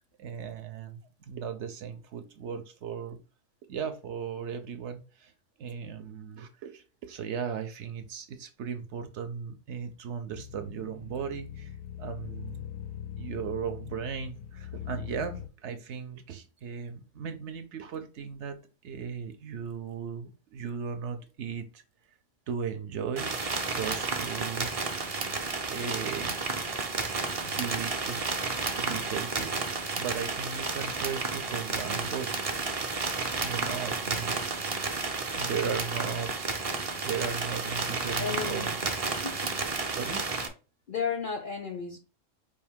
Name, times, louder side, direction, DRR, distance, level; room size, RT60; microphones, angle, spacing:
voice 1, 0.0-3.2 3.7-5.3 5.6-12.6 13.2-18.6 18.8-21.8 22.5-23.4 23.7-24.7 25.7-26.3 27.4-28.3 28.7-32.3 33.4-34.9 35.3-36.5 37.0-38.8 39.9-40.2, right 7 dB, 65° right, 0.8 m, -37 dB
sound 1, 10.3-15.5, left 10 dB, 90° left, 1.0 m, -41 dB
sound 2, 23.2-40.5, right 4 dB, 40° right, 0.6 m, -32 dB
voice 2, 38.2-38.7 39.4-39.5 40.9-42.0, left 6 dB, 55° left, 0.6 m, -33 dB
4.7 x 2.6 x 3.5 m
omnidirectional pair, 1.4 m